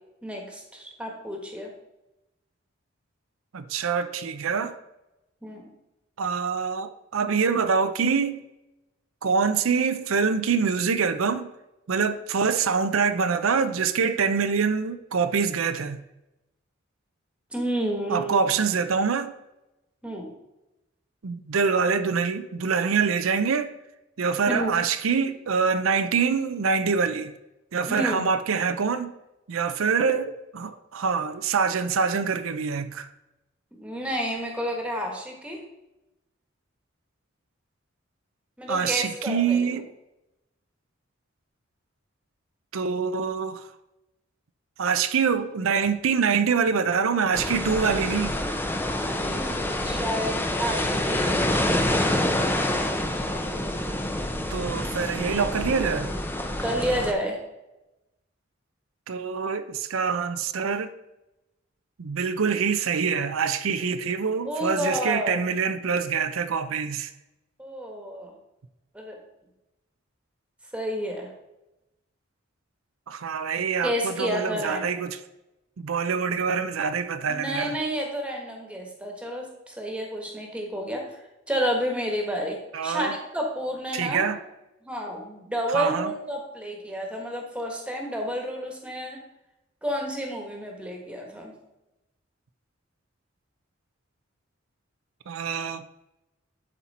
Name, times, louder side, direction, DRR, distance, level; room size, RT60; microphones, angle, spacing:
voice 1, 0.2-1.7 5.4-5.7 17.5-18.5 20.0-20.3 24.5-24.7 27.9-28.3 33.7-35.6 38.6-39.8 49.2-51.6 56.6-57.4 64.4-65.4 67.6-68.3 68.9-69.2 70.7-71.3 73.8-74.8 77.3-81.2 81.5-84.3 84.8-89.2 89.8-91.6, equal, 5° right, 1.4 m, -30 dB
voice 2, 3.5-4.7 6.2-8.4 9.2-11.5 11.9-16.0 18.1-19.3 21.2-23.7 24.2-27.3 27.7-29.2 29.5-33.1 38.7-39.9 42.7-43.7 44.8-48.4 54.5-56.1 59.1-60.9 62.0-67.1 73.1-75.2 75.8-77.8 82.7-83.1 83.9-84.4 85.7-86.1 95.3-95.9, right 5 dB, 85° right, 0.5 m, -25 dB
sound 1, 47.3-57.1, left 1 dB, 10° left, 0.6 m, -27 dB
11.0 x 4.4 x 4.2 m
head